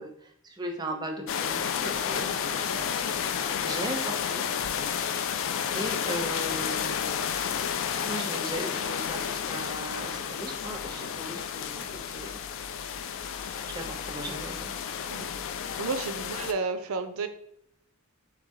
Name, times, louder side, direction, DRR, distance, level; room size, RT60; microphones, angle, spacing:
voice 1, 0.0-3.1 3.6-4.4 5.7-7.3 8.0-12.4 13.7-14.7 16.2-16.3, right 1 dB, 20° right, 3 dB, 0.5 m, -37 dB
sound 1, 1.3-16.5, left 8 dB, 65° left, 0.3 m, -31 dB
voice 2, 15.8-17.3, right 4 dB, 85° right, 9 dB, 0.5 m, -31 dB
3.4 x 3.2 x 3.6 m, 0.72 s
head